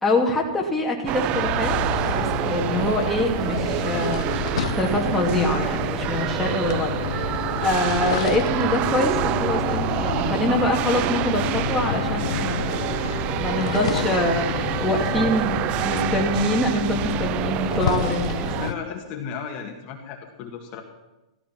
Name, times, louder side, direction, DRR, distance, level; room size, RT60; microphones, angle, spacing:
voice 1, 0.0-1.7 2.1-4.3 4.8-12.7 13.1-18.5, left 1 dB, 5° left, -3 dB, 2.5 m, -25 dB
sound 1, 1.1-18.7, right 15 dB, 30° right, 0.4 m, -27 dB
sound 2, 1.3-18.7, left 9 dB, 65° left, 1.1 m, -30 dB
sound 3, 6.0-16.5, left 6 dB, 90° left, 1.6 m, -36 dB
voice 2, 15.0-15.3 18.5-20.8, left 7 dB, 35° left, 2 dB, 2.0 m, -35 dB
14.5 x 13.5 x 5.9 m, 1.0 s
hypercardioid pair, 135°, 4 cm